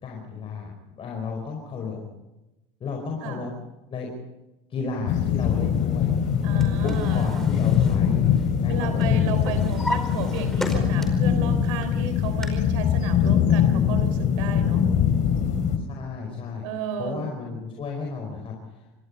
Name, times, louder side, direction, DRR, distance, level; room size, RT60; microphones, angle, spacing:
voice 1, 0.0-2.0 2.8-3.5 3.9-4.1 4.7-6.1 6.8-8.2 8.6-9.1 15.9-16.6 17.0-18.9, left 4 dB, 35° left, 1 dB, 5.0 m, -33 dB
sound 1, 5.1-15.8, left 8 dB, 50° left, 3.6 m, -22 dB
Drawer open or close, 6.3-8.7 9.0-11.3 11.8-12.5, left 1 dB, ahead, 4.9 m, -34 dB
voice 2, 6.4-7.6 8.7-14.8 16.6-17.4, right 6 dB, 80° right, 10 dB, 3.5 m, -33 dB
26.5 x 19.5 x 5.5 m, 0.95 s
supercardioid pair, 110°, 16 cm